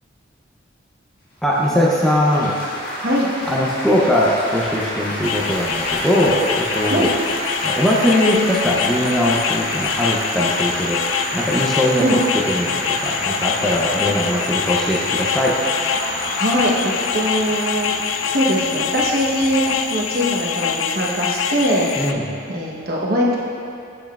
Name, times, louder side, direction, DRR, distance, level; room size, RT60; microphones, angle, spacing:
voice 1, 1.4-2.5 3.5-7.1 7.6-11.0 11.3-15.6 22.0-22.3, equal, ahead, -6 dB, 0.5 m, -20 dB
Laughter / Applause / Chatter, 1.5-20.6, equal, 50° left, 1.3 m, -29 dB
voice 2, 3.0-3.3 6.9-7.1 12.0-12.2 16.4-17.9 18.2-22.2 22.5-23.4, equal, 50° right, -4 dB, 0.9 m, -21 dB
sound 1, 5.2-22.1, left 7 dB, 75° left, 0.3 m, -25 dB
7.6 x 6.9 x 2.3 m, 2.6 s
head